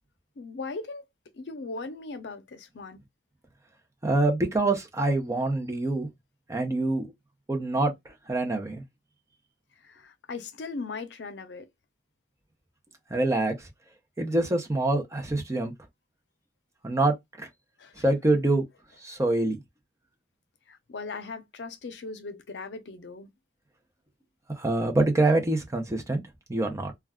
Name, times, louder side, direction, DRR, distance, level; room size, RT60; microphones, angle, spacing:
voice 1, 0.4-1.0 1.3-3.0 9.8-11.7 17.8-18.1 20.7-23.3, left 3 dB, 75° left, 0.5 m, -38 dB
voice 2, 4.0-6.1 6.5-7.1 7.5-7.9 8.3-8.8 13.1-13.5 14.2-15.7 16.8-17.5 18.0-18.6 19.0-19.6 24.5-26.2 26.5-26.9, right 2 dB, 15° right, 0.6 m, -25 dB
2.3 x 2.3 x 3.4 m
head